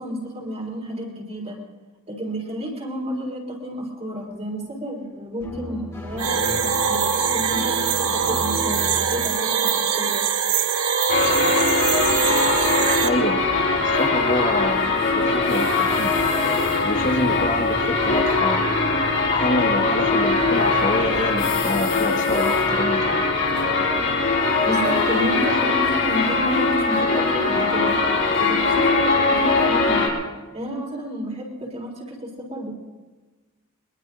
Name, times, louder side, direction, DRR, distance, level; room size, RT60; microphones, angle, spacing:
voice 1, 0.0-1.6 2.1-10.3 24.6-28.0 28.4-30.1 30.5-32.7, equal, 30° right, 0 dB, 3.7 m, -30 dB
sound 1, 5.4-9.3, equal, 15° left, 2.4 m, -34 dB
sound 2, 6.2-13.1, right 6 dB, 90° right, 1.0 m, -22 dB
sound 3, 11.1-30.1, left 3 dB, 60° left, 3.8 m, -21 dB
voice 2, 13.0-13.4 13.8-16.1 16.8-18.7 19.3-23.2, left 1 dB, 35° left, 1 dB, 1.4 m, -26 dB
23.0 x 22.0 x 2.5 m, 1.2 s
head